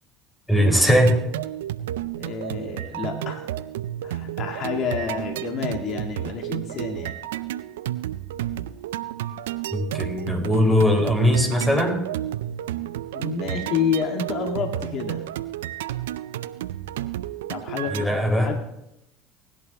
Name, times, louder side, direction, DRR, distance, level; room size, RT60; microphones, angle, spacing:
voice 1, 0.5-1.2 9.7-12.0 17.9-18.5, equal, 10° left, 2 dB, 5.2 m, -20 dB
sound 1, 0.9-18.0, right 13 dB, 85° right, 0.4 m, -32 dB
voice 2, 2.2-3.5 4.0-7.2 13.1-15.2 17.5-18.1 18.4-18.6, left 6 dB, 55° left, 3 dB, 1.9 m, -29 dB
19.5 x 11.0 x 2.9 m, 0.84 s
hypercardioid pair, 75°, 0 cm